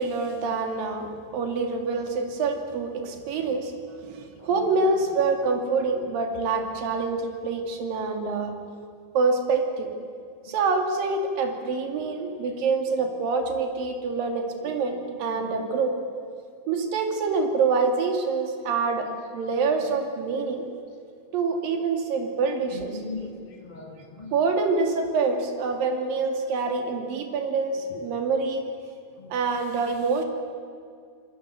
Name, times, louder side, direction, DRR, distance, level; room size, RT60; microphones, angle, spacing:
voice 1, 0.0-3.7 4.0-8.5 9.1-9.9 10.5-16.0 16.7-20.6 21.3-23.0 24.3-28.6 29.3-30.2, right 4 dB, 75° right, 4 dB, 4.1 m, -26 dB
voice 2, 22.7-24.3 29.2-29.3, left 3 dB, 20° left, 2 dB, 1.4 m, -39 dB
27.5 x 21.5 x 8.1 m, 2.3 s
omnidirectional pair, 4.0 m